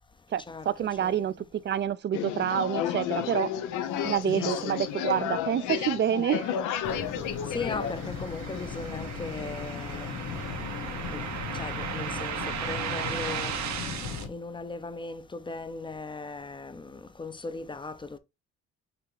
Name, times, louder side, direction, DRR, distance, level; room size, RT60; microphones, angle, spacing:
voice 1, 0.3-3.5 4.0-6.5, right 9 dB, 40° right, 0.4 m, -28 dB
Group Talking, 2.1-8.1, left 9 dB, 90° left, 0.6 m, -31 dB
voice 2, 4.3-4.8 7.5-10.1 11.1-11.2 11.5-13.6 14.3-18.2, left 3 dB, 15° left, 0.5 m, -38 dB
sound 1, 6.4-14.2, right 9 dB, 65° right, 0.7 m, -37 dB
sound 2, 6.8-14.3, left 6 dB, 70° left, 1.3 m, -37 dB
5.8 x 2.8 x 3.2 m
cardioid pair, 90°, 30 cm